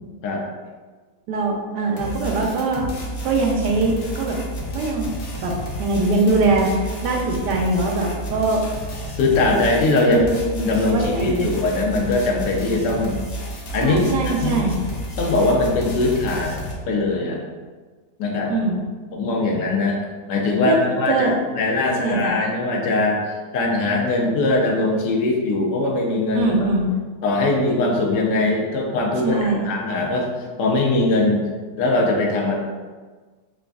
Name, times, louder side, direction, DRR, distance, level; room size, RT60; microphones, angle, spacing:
voice 1, 1.3-2.8 3.2-4.4 4.7-5.1 5.4-8.7 10.0-10.3 10.9-11.5 13.8-14.8 18.5-18.8 20.6-20.8 21.1-21.4 22.0-22.4 26.3-26.9 29.2-29.7, right 3 dB, 80° right, 0 dB, 1.2 m, -22 dB
sound 1, 2.0-16.7, equal, 65° left, 0.6 m, -31 dB
voice 2, 9.2-10.3 10.5-13.2 13.7-14.6 15.2-17.4 18.2-18.5 19.1-20.0 20.3-21.3 21.5-26.7 27.2-30.3 30.6-31.4 31.8-32.6, left 2 dB, 85° left, 0 dB, 1.3 m, -21 dB
5.0 x 2.4 x 2.3 m, 1.4 s
omnidirectional pair, 1.8 m